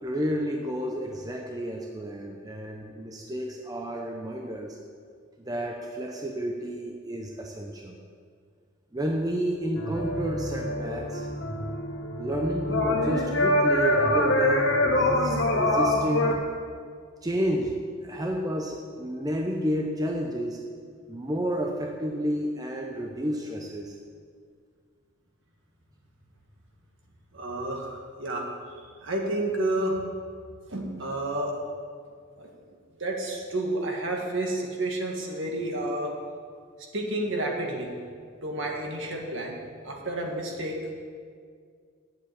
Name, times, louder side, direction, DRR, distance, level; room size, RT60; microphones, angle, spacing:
voice 1, 0.0-4.8 5.4-8.0 8.9-11.3 12.2-16.4 17.2-20.6 21.1-24.0, right 1 dB, 15° right, 1 dB, 0.6 m, -31 dB
sound 1, 9.8-16.3, left 1 dB, 55° left, 1.2 m, -25 dB
voice 2, 27.3-28.5 29.0-30.0 30.7-31.5 32.4-32.5 33.0-36.1 36.9-37.9 38.4-39.5 39.8-40.9, right 1 dB, 60° right, 0 dB, 1.8 m, -30 dB
8.6 x 7.5 x 8.5 m, 2.1 s
head